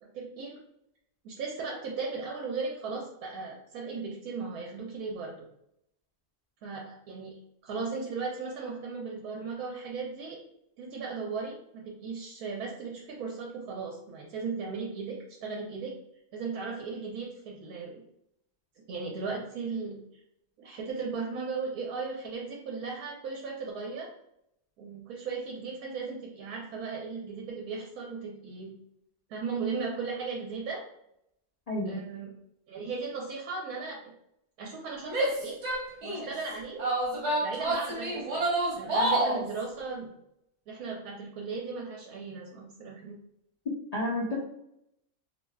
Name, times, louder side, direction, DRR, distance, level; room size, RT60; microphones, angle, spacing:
voice 1, 0.0-0.6 1.2-5.5 6.6-10.4 10.8-15.9 16.3-18.0 18.9-20.2 20.6-24.1 24.8-28.7 29.3-30.8 31.9-32.3 32.7-34.1 34.6-35.6 36.0-37.0 37.4-38.4 38.8-40.1 40.7-43.2, right 4 dB, 75° right, -2 dB, 1.0 m, -36 dB
voice 2, 31.7-32.0 43.9-44.4, left 1 dB, 80° left, -5 dB, 0.3 m, -30 dB
Female speech woman speaking / Yell, 35.1-36.3 36.8-39.4, right 1 dB, 55° right, 1.1 m, -28 dB
3.3 x 2.6 x 2.2 m, 0.78 s
omnidirectional pair, 1.6 m